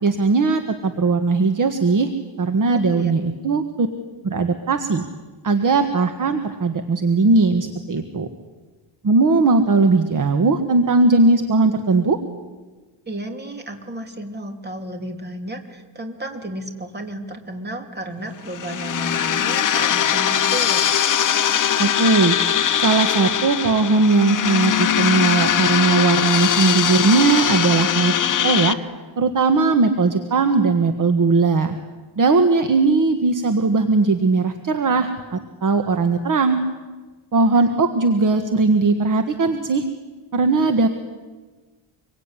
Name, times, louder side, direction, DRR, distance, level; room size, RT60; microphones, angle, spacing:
voice 1, 0.0-2.1 2.4-3.9 4.2-5.0 5.4-8.3 9.0-12.2 21.8-22.4 22.8-28.1 28.4-28.8 29.2-31.8 32.2-36.6 37.3-39.9 40.3-40.9, right 3 dB, 40° right, 7 dB, 1.6 m, -18 dB
voice 2, 2.7-3.1 13.1-20.9 37.5-37.6, right 1 dB, 20° right, 4 dB, 3.2 m, -32 dB
sound 1, 18.5-28.7, left 9 dB, 40° left, 1.0 m, -20 dB
25.5 x 23.5 x 9.8 m, 1.3 s
wide cardioid pair, 170°, 48 cm